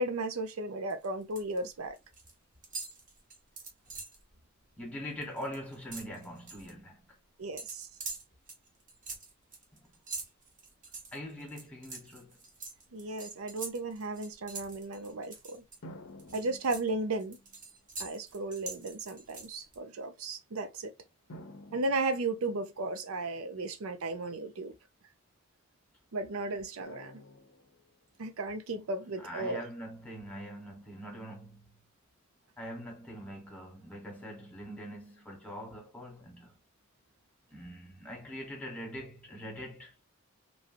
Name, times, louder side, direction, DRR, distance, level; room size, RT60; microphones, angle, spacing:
voice 1, 0.0-2.0 7.4-7.9 12.9-15.6 16.3-17.4 18.0-20.9 21.7-24.7 26.1-27.2 28.2-29.6, right 2 dB, 85° right, 0.6 m, -35 dB
sound 1, 0.9-1.6 1.9-2.3 2.6-4.2 4.6-4.8 5.1-6.7 7.6-15.8 16.2-19.8, right 4 dB, 40° right, 1.0 m, -44 dB
voice 2, 4.8-7.0 9.8-9.9 11.1-12.4 26.5-26.6 29.2-31.7 32.6-36.5 37.5-40.1, equal, 5° left, 1.2 m, -43 dB
sound 2, 15.8-17.6 18.5-18.6 21.3-23.0 26.9-28.2, equal, 65° left, 0.6 m, -51 dB
3.1 x 2.7 x 2.6 m
head